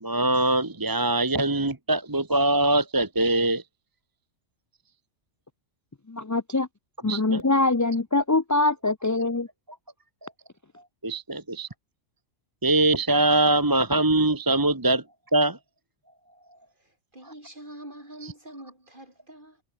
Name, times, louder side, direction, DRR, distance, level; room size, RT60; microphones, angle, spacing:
voice 1, 0.0-3.6 7.1-7.4 10.2-10.3 11.0-11.7 12.6-15.0 15.3-15.6, right 2 dB, 20° right, 1.3 m, -23 dB
voice 2, 6.1-6.7 7.0-9.5, left 2 dB, 20° left, 0.6 m, -23 dB
voice 3, 16.8-19.6, right 1 dB, 40° right, 8.1 m, -45 dB
omnidirectional pair, 1.3 m